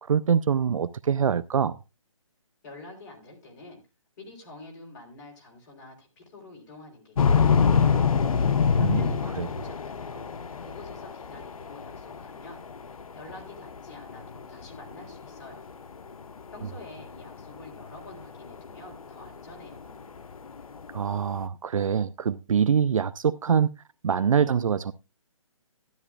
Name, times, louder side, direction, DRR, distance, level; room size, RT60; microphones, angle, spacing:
voice 1, 0.0-1.8 8.8-9.1 9.4-9.5 20.9-23.7 24.0-24.9, right 7 dB, 70° right, 0.5 m, -24 dB
voice 2, 2.6-3.8 4.2-8.1 8.8-12.6 12.9-15.8 16.5-20.1, left 2 dB, 35° left, 3.7 m, -47 dB
sound 1, 7.2-21.4, left 6 dB, 80° left, 0.7 m, -26 dB
12.5 x 11.0 x 2.4 m
hypercardioid pair, 155°, 18 cm